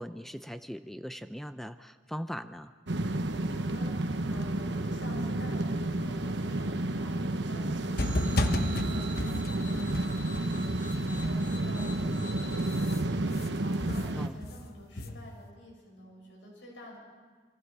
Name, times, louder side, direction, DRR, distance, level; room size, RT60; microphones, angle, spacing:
voice 1, 0.0-2.7 7.6-7.8 14.2-14.4, equal, ahead, 10 dB, 0.5 m, -40 dB
sound 1, 2.9-14.3, right 1 dB, 70° right, 1.1 m, -31 dB
voice 2, 3.1-17.0, left 1 dB, 80° left, -1 dB, 7.3 m, -50 dB
sound 2, 8.0-12.3 12.6-15.5, left 1 dB, 55° left, 1.0 m, -34 dB
sound 3, 8.0-12.8, right 1 dB, 40° right, 2.2 m, -45 dB
26.5 x 23.5 x 4.8 m, 1.5 s
head